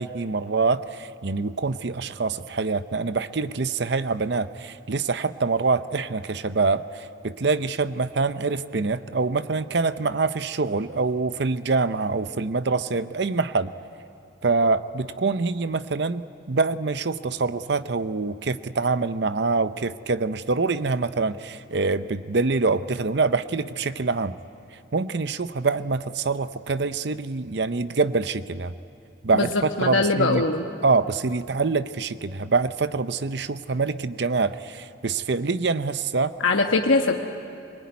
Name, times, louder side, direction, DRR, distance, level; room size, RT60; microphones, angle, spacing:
voice 1, 0.0-13.7 14.4-24.4 24.9-28.7 29.2-30.4 30.8-36.3, right 4 dB, 60° right, 13 dB, 0.6 m, -25 dB
voice 2, 29.3-30.6 36.4-37.1, left 3 dB, 85° left, 2 dB, 1.2 m, -21 dB
24.0 x 21.5 x 9.5 m, 2.6 s
head